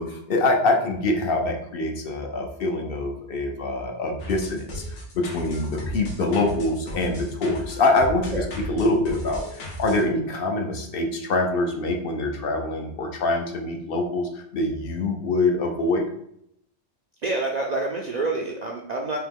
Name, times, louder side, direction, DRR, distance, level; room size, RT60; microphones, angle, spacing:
voice 1, 0.0-16.0, left 2 dB, 60° left, 2 dB, 0.8 m, -25 dB
sound 1, 4.2-10.0, equal, 90° left, 1.2 m, -35 dB
voice 2, 17.2-19.2, right 2 dB, 55° right, -1 dB, 0.5 m, -27 dB
3.6 x 2.9 x 3.6 m, 0.73 s
omnidirectional pair, 1.2 m